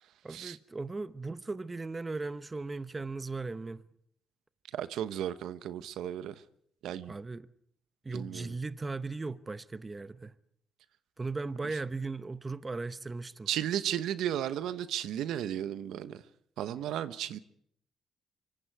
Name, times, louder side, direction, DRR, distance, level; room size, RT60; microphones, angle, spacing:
voice 1, 0.2-3.8 7.1-7.5 8.0-10.3 11.2-13.5, right 3 dB, 20° right, 0.9 m, -37 dB
voice 2, 4.7-6.3 6.8-7.2 8.1-8.5 13.5-16.2 16.6-17.4, right 11 dB, 80° right, 1.1 m, -34 dB
25.0 x 24.5 x 4.8 m
cardioid pair, 100°, 0 cm